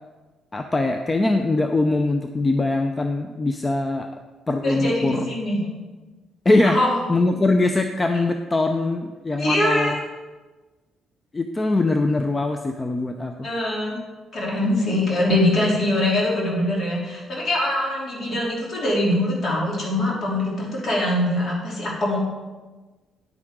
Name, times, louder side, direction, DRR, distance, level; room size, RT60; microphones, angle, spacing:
voice 1, 0.5-4.1 4.5-5.3 6.4-6.8 7.1-10.0 11.3-13.5, left 2 dB, 25° left, 6 dB, 0.6 m, -22 dB
voice 2, 4.6-5.6 6.6-7.0 9.4-9.9 13.4-14.0 14.3-22.2, left 1 dB, 50° left, -4 dB, 3.1 m, -23 dB
9.6 x 8.6 x 3.7 m, 1.3 s
cardioid pair, 90°, 0 cm